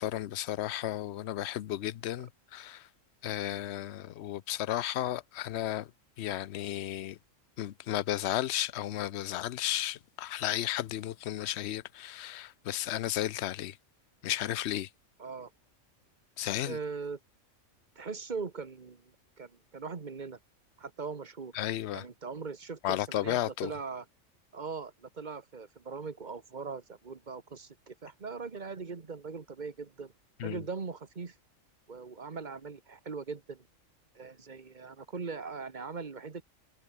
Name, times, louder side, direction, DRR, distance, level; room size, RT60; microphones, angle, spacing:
voice 1, 0.0-2.9 3.2-5.9 6.2-7.2 7.6-13.8 14.2-14.9 16.4-16.8 21.5-22.0 22.8-23.7 30.4-30.6, left 13 dB, 60° left, 0.9 m, -33 dB
voice 2, 15.2-15.5 16.6-17.2 17.9-19.1 19.4-20.4 20.8-21.5 21.9-24.0 24.5-30.1 30.4-31.3 31.9-33.6 34.1-36.4, right 4 dB, 35° right, 1.5 m, -40 dB
omnidirectional pair, 1.3 m